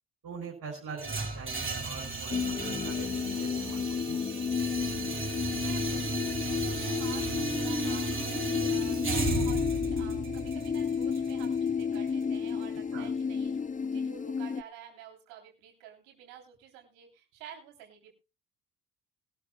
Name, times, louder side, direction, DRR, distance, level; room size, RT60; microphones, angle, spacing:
voice 1, 0.2-4.2 12.9-13.1, right 5 dB, 60° right, -2 dB, 4.9 m, -44 dB
sound 1, 1.0-13.0, right 3 dB, 30° right, 4.6 m, -36 dB
sound 2, 2.3-14.6, left 6 dB, 20° left, 0.6 m, -32 dB
voice 2, 5.4-18.1, right 9 dB, 85° right, 3 dB, 3.3 m, -50 dB
sound 3, 5.6-11.2, right 1 dB, ahead, 2.9 m, -41 dB
21.0 x 13.0 x 2.2 m, 0.28 s
hypercardioid pair, 55°, 42 cm